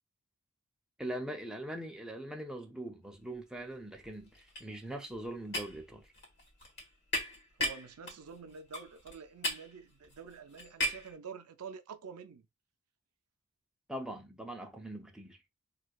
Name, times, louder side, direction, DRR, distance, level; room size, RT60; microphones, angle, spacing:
voice 1, 1.0-6.1 13.9-15.4, right 1 dB, 5° right, 0.5 m, -42 dB
sound 1, 3.3-3.7 3.9-11.1, equal, 55° left, 1.4 m, -38 dB
voice 2, 7.6-12.5, right 6 dB, 75° right, 0.5 m, -48 dB
4.4 x 2.4 x 2.2 m
head